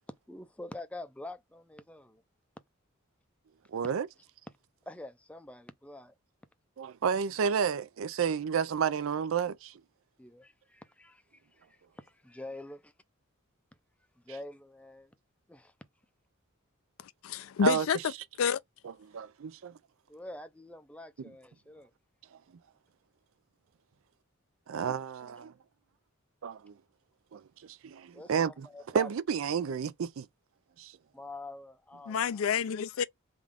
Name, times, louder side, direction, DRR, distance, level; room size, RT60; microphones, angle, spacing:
voice 1, 0.1-2.2 4.9-6.1 10.2-12.8 14.2-15.1 15.5-15.7 20.1-21.9 28.1-29.1 31.1-32.5, left 1 dB, 5° left, 0.4 m, -46 dB
voice 2, 3.7-4.1 6.8-9.7 17.6-17.9 19.1-19.7 24.7-25.5 26.4-26.7 27.3-28.7 28.9-30.3 30.8-30.9, right 7 dB, 70° right, 0.4 m, -31 dB
voice 3, 17.0-18.0 18.4-18.6 32.1-33.0, left 7 dB, 75° left, 0.4 m, -29 dB
3.6 x 2.3 x 3.5 m
head